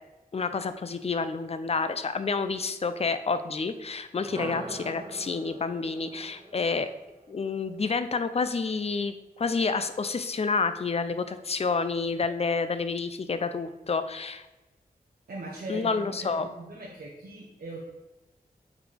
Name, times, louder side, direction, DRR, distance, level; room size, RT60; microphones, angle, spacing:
voice 1, 0.3-6.9 7.3-14.5 15.7-16.5, left 4 dB, 40° left, 10 dB, 0.4 m, -29 dB
sound 1, 4.1-8.1, right 2 dB, 30° right, 1.0 m, -43 dB
voice 2, 15.3-17.8, right 2 dB, 80° right, -4 dB, 1.0 m, -40 dB
7.0 x 4.1 x 3.3 m, 1.1 s
wide cardioid pair, 75°, 16 cm